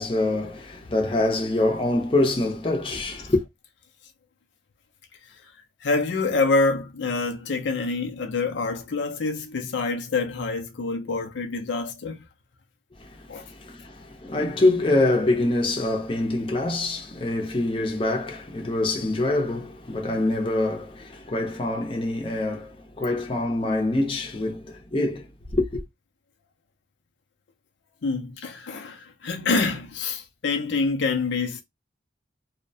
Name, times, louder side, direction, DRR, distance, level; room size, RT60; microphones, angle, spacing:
voice 1, 0.0-3.4 13.0-25.8, left 2 dB, 30° left, 0.6 m, -25 dB
voice 2, 5.8-12.2 13.3-13.5 28.0-31.6, left 3 dB, 75° left, 0.5 m, -26 dB
2.7 x 2.1 x 2.6 m
head